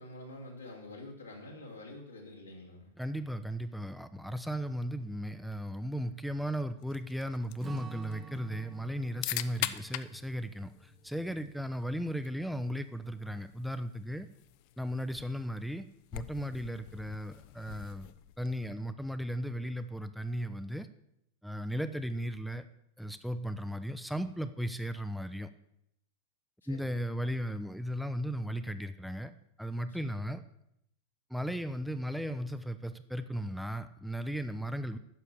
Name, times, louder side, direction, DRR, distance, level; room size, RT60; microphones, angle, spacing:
voice 1, 0.0-2.9 26.6-26.9, left 1 dB, 80° left, -1 dB, 2.8 m, -47 dB
voice 2, 3.0-14.3 14.8-15.9 16.1-18.1 18.4-20.9 21.4-22.7 23.0-25.5 26.7-30.4 31.3-35.0, equal, ahead, 11 dB, 0.5 m, -36 dB
sound 1, 6.8-18.7, left 15 dB, 45° left, 0.5 m, -44 dB
Strum, 7.6-12.3, right 6 dB, 25° right, 0.9 m, -50 dB
9.9 x 6.8 x 8.2 m, 0.77 s
figure-of-eight pair, 90°, 0 cm